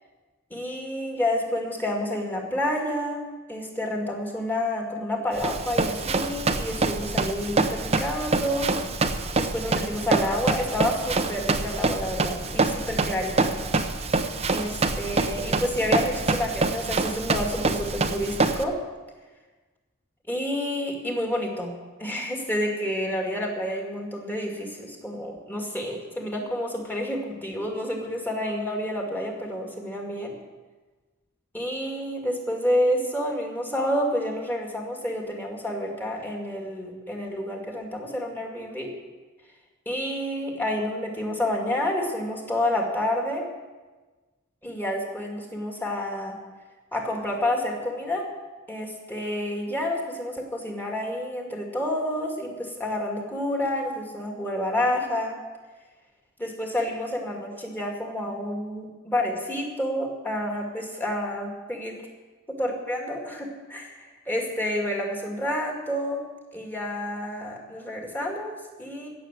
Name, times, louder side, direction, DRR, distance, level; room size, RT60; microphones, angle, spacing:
voice 1, 0.5-3.2 3.5-8.7 9.4-13.5 14.5-18.8 20.3-21.7 22.0-30.3 31.5-38.9 39.9-43.5 44.6-46.4 46.9-48.3 48.7-55.4 56.4-62.0 62.5-66.2 66.5-69.1, left 1 dB, 10° left, 0 dB, 2.2 m, -29 dB
Run, 5.4-18.6, right 3 dB, 30° right, 0.8 m, -26 dB
17.0 x 7.0 x 7.5 m, 1.3 s
head